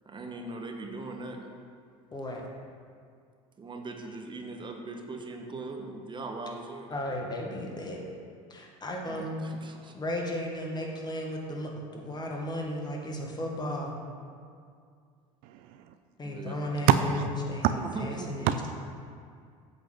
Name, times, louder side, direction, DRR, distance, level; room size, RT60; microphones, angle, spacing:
voice 1, 0.0-1.4 3.6-6.9 9.1-10.0 16.2-16.5 17.8-18.5, right 3 dB, 25° right, 3 dB, 1.0 m, -40 dB
voice 2, 2.1-2.4 6.9-8.0 8.5-9.4 9.9-14.0 16.2-18.7, left 1 dB, 25° left, 0 dB, 1.5 m, -35 dB
voice 3, 15.4-15.9 16.9-17.3 17.6-17.8 18.5-18.7, right 10 dB, 60° right, 9 dB, 0.4 m, -25 dB
8.0 x 3.8 x 6.5 m, 2.2 s
hypercardioid pair, 75°, 17 cm